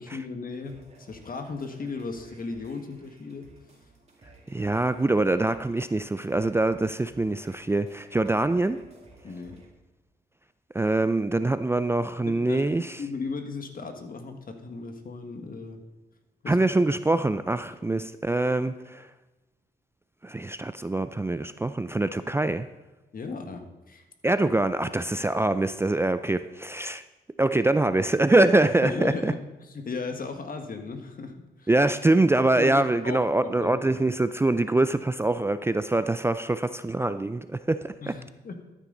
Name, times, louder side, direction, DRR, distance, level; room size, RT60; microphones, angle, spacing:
voice 1, 0.0-3.6 9.2-9.6 12.3-15.8 16.4-16.6 17.8-18.1 23.1-24.0 28.8-31.7 32.6-32.7 33.0-34.1 38.0-38.6, left 4 dB, 55° left, 1.5 m, -36 dB
sound 1, 0.6-9.7, right 3 dB, 35° right, 2.4 m, -55 dB
voice 2, 4.5-8.8 10.7-12.9 16.5-19.1 20.2-22.7 24.2-27.0 27.4-29.3 31.7-38.1, right 2 dB, 15° right, 0.4 m, -24 dB
13.0 x 9.2 x 3.9 m
cardioid pair, 85°, 18 cm